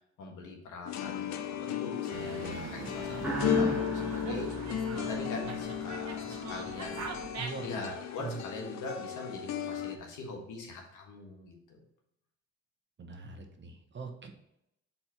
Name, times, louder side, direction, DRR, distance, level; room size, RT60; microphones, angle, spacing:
voice 1, 0.2-4.5 4.9-7.0 7.6-11.8, left 3 dB, 85° left, 1 dB, 1.5 m, -42 dB
sound 1, 0.9-10.0, left 9 dB, 65° left, 0.6 m, -35 dB
Dog, 2.1-7.8, right 5 dB, 60° right, 1.0 m, -42 dB
sound 2, 3.2-5.9, equal, 5° right, 1.4 m, -37 dB
voice 2, 7.4-7.9 8.2-8.4 13.0-14.3, right 4 dB, 40° right, 5 dB, 1.0 m, -42 dB
4.3 x 4.3 x 5.7 m, 0.81 s
cardioid pair, 90°, 30 cm